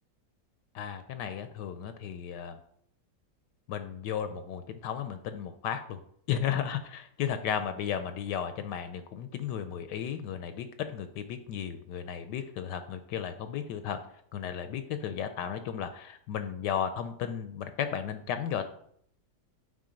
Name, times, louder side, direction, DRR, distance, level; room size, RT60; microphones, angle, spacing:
voice 1, 0.7-2.6 3.7-6.0 6.3-14.0 14.3-18.7, left 8 dB, 75° left, 9 dB, 1.2 m, -34 dB
8.5 x 3.9 x 5.1 m, 0.67 s
omnidirectional pair, 1.9 m